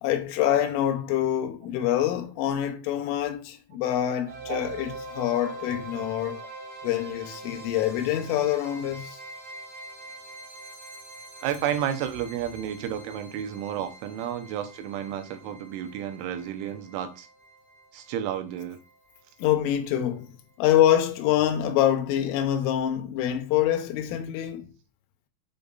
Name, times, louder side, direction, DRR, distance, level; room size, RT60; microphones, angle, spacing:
voice 1, 0.0-6.4 6.8-9.2 19.4-20.3 20.6-24.7, left 11 dB, 90° left, 3.5 m, -25 dB
sound 1, 4.3-19.2, right 2 dB, 40° right, 1.6 m, -44 dB
voice 2, 11.4-17.3 17.9-18.8, right 10 dB, 80° right, 3.4 m, -31 dB
8.2 x 5.2 x 4.0 m
omnidirectional pair, 5.6 m